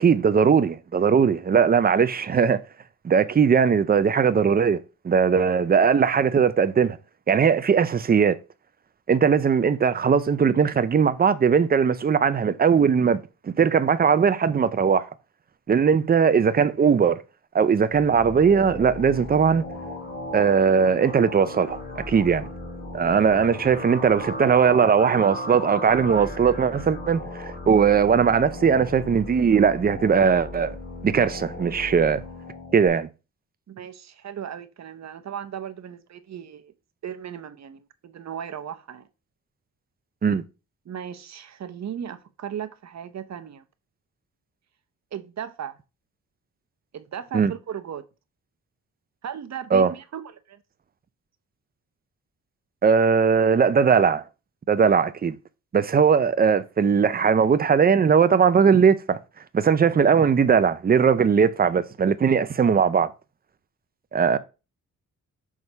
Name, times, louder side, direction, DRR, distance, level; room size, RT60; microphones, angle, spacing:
voice 1, 0.0-2.6 3.0-4.8 5.0-7.0 7.3-8.4 9.1-15.0 15.7-17.2 17.5-19.6 20.3-22.4 22.9-30.7 31.0-32.2 32.7-33.1 40.2-40.4 47.3-47.5 49.7-49.9 52.8-54.2 54.7-55.4 55.7-59.2 59.5-63.1 64.1-64.4, right 6 dB, 25° right, 0.5 m, -19 dB
sound 1, 17.9-32.9, left 2 dB, 30° left, 3.1 m, -36 dB
voice 2, 33.7-36.7 37.0-39.1 40.8-43.6 45.1-45.8 46.9-48.0 49.2-50.6, right 8 dB, 50° right, 0.8 m, -36 dB
6.2 x 3.6 x 5.4 m
cardioid pair, 120°, 34 cm